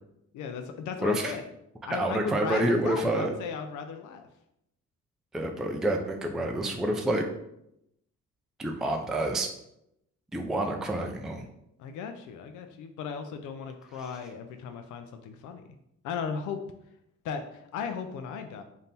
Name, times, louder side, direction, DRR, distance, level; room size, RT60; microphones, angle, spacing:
voice 1, 0.3-1.4 1.9-4.3 11.8-15.6 16.0-16.6 17.2-18.6, left 6 dB, 80° left, 7 dB, 0.5 m, -36 dB
voice 2, 1.0-1.4 1.9-3.3 5.3-7.3 8.6-9.5 10.3-11.4, right 1 dB, ahead, 2 dB, 0.4 m, -28 dB
3.5 x 2.7 x 4.1 m, 0.80 s
cardioid pair, 90°, 30 cm